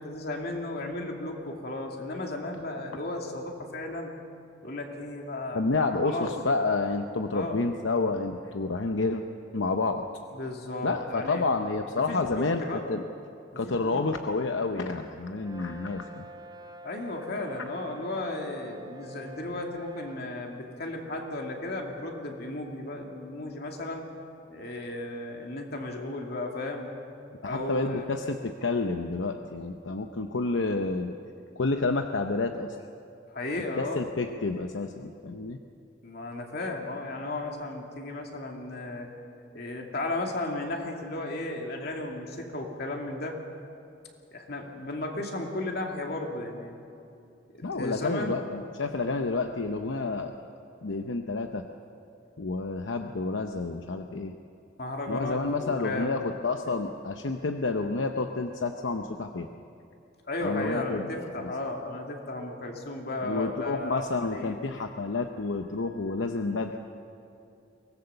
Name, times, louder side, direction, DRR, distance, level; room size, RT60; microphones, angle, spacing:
voice 1, 0.0-4.1 4.6-6.3 7.3-7.6 10.3-11.4 12.0-12.8 13.5-14.0 16.8-24.0 24.5-26.9 27.4-28.1 33.3-34.0 36.0-39.1 39.5-43.4 44.3-46.8 47.5-48.4 54.8-56.4 60.3-64.0 64.3-64.7, left 2 dB, 55° left, 1 dB, 2.6 m, -35 dB
voice 2, 5.5-9.2 9.5-10.1 10.8-12.6 12.9-13.0 13.6-16.3 27.4-31.2 31.6-32.8 33.7-35.6 47.6-50.4 50.8-51.7 52.4-54.4 55.1-59.5 60.4-61.5 63.2-66.8, left 3 dB, 80° left, 5 dB, 0.8 m, -29 dB
Brass instrument, 15.4-20.3, right 1 dB, 20° right, 0.6 m, -46 dB
23.5 x 19.0 x 7.0 m, 2.7 s
head